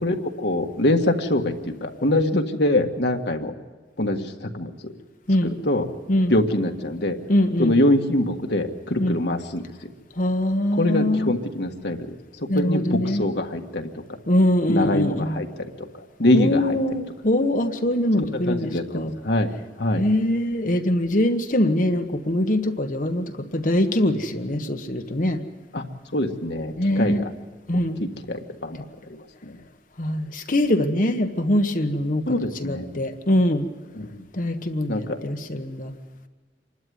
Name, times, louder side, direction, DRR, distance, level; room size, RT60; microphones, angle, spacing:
voice 1, 0.0-1.5 1.8-3.5 4.0-4.7 5.4-5.9 6.3-7.2 7.6-9.6 10.7-12.2 12.6-13.9 14.7-15.7 16.2-16.8 18.2-19.5 19.8-20.0 25.7-25.8 26.1-27.3 28.0-28.8 29.5-29.6 32.3-32.8 33.9-34.2 34.9-35.3, left 1 dB, 65° left, 3 dB, 1.6 m, -24 dB
voice 2, 7.3-7.7 9.0-9.2 10.2-11.3 12.5-13.2 14.3-15.3 16.3-19.1 20.0-25.4 26.8-27.2 27.7-28.0 30.0-33.6 34.3-35.9, left 1 dB, 45° left, 6 dB, 1.2 m, -23 dB
27.0 x 12.0 x 9.5 m, 1.4 s
head